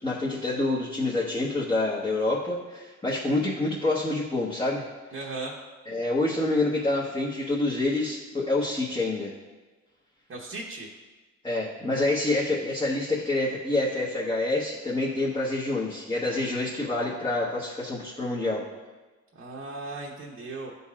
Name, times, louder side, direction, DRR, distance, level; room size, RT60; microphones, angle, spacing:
voice 1, 0.0-4.8 5.8-9.3 11.4-18.6, left 2 dB, 15° left, -7 dB, 1.2 m, -27 dB
voice 2, 5.1-5.5 10.3-10.9 19.3-20.7, right 3 dB, 45° right, -4 dB, 1.1 m, -37 dB
11.5 x 4.0 x 2.5 m, 1.3 s
cardioid pair, 90°, 30 cm